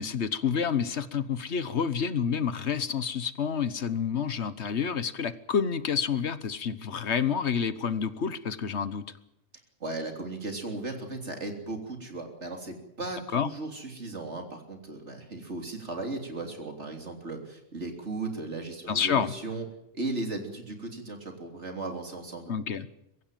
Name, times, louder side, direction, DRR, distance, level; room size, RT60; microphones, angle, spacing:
voice 1, 0.0-9.0 13.3-13.5 18.9-19.3 22.5-22.9, left 7 dB, 65° left, 14 dB, 1.4 m, -29 dB
voice 2, 9.8-19.7 19.9-22.5, right 2 dB, 70° right, 4 dB, 3.7 m, -36 dB
23.5 x 15.5 x 9.2 m, 0.86 s
omnidirectional pair, 1.2 m